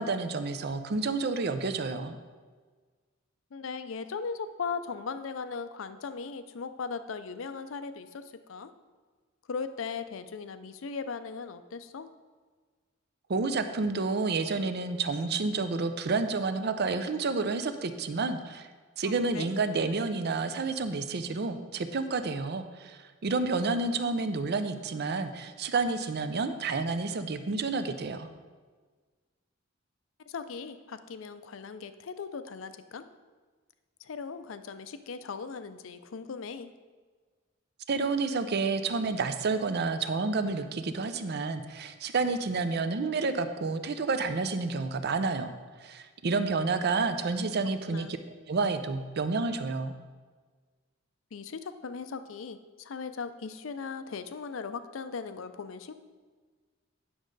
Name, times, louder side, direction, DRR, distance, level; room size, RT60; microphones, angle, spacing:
voice 1, 0.0-2.2 13.3-18.7 19.0-28.3 37.9-45.5 45.8-48.2 48.5-49.9, right 3 dB, 55° right, 10 dB, 0.5 m, -30 dB
voice 2, 3.5-8.7 9.5-12.1 19.0-19.5 30.3-33.1 34.0-36.7 47.9-48.1 51.3-55.9, left 5 dB, 75° left, 11 dB, 0.5 m, -38 dB
9.4 x 6.2 x 3.9 m, 1.5 s
head